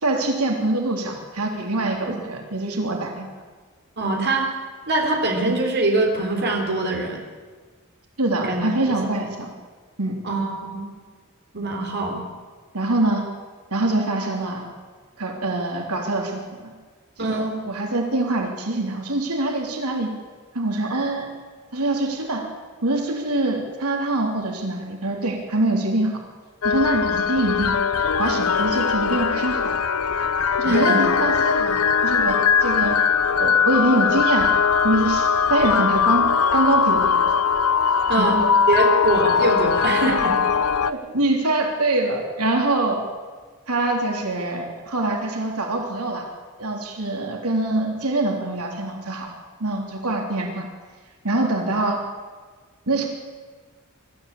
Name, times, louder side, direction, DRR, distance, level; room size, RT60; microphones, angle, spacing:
voice 1, 0.0-3.3 8.2-9.5 10.0-10.2 12.7-13.2 13.7-14.7 15.2-16.7 17.2-20.1 20.5-21.3 21.7-22.5 22.8-26.2 26.6-27.8 28.2-29.8 30.6-33.0 33.4-34.5 34.8-37.2 38.2-38.4 40.9-43.0 43.7-46.2 46.6-49.3 49.6-50.7 51.2-52.0 52.9-53.1, right 2 dB, 85° right, 2 dB, 3.6 m, -24 dB
voice 2, 4.0-4.5 4.9-7.2 8.4-8.7 10.2-10.8 11.5-12.2 17.2-17.6 30.7-31.0 38.1-38.4 38.7-40.4, right 2 dB, 50° right, 1 dB, 3.5 m, -23 dB
sound 1, 26.6-40.9, left 6 dB, 75° left, 0.8 m, -20 dB
24.0 x 14.0 x 8.7 m, 1.4 s
head